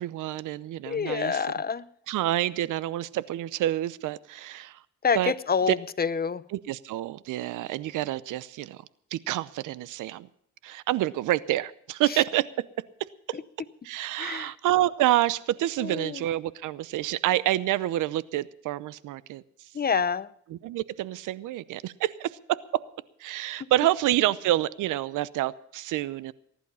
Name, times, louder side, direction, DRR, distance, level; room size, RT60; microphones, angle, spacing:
voice 1, 0.0-1.5 2.1-4.8 5.1-5.3 5.7-5.8 6.5-8.8 9.1-10.3 10.6-12.5 13.3-13.4 13.8-19.4 20.5-22.6 23.2-26.3, right 14 dB, 85° right, 19 dB, 0.8 m, -28 dB
voice 2, 0.9-1.9 5.0-6.4 13.3-13.4 14.2-14.5 15.8-16.2 19.7-20.3 23.6-23.7, left 6 dB, 30° left, 17 dB, 0.8 m, -27 dB
20.0 x 11.5 x 5.6 m, 0.67 s
cardioid pair, 90°, 30 cm